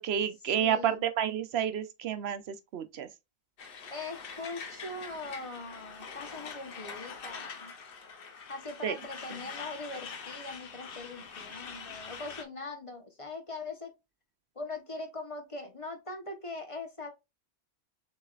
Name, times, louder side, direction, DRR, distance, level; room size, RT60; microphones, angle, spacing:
voice 1, 0.0-3.1 8.8-8.9 9.3-9.4, right 9 dB, 75° right, 0.9 m, -30 dB
voice 2, 0.6-1.0 3.9-7.7 8.5-13.9 14.5-17.1, left 3 dB, 30° left, 1.0 m, -41 dB
Truck, 3.6-12.4, left 5 dB, 60° left, 0.9 m, -44 dB
7.0 x 3.2 x 2.4 m
omnidirectional pair, 1.1 m